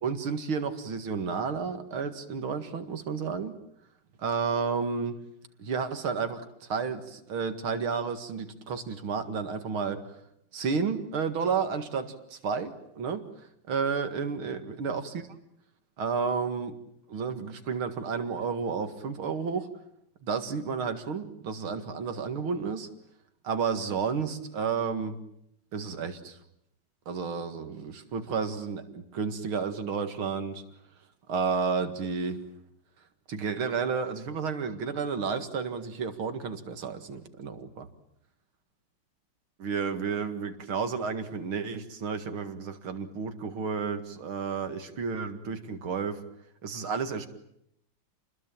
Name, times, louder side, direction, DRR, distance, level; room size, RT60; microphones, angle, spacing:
voice 1, 0.0-3.6 4.2-5.2 5.6-10.2 10.5-13.2 13.7-15.3 16.0-16.8 17.1-19.7 20.2-22.9 23.4-25.2 25.7-26.4 27.1-30.6 31.3-32.4 33.3-37.9 39.6-46.2 46.6-47.3, right 5 dB, 75° right, 8 dB, 2.8 m, -31 dB
29.0 x 21.0 x 9.1 m, 0.76 s
omnidirectional pair, 2.3 m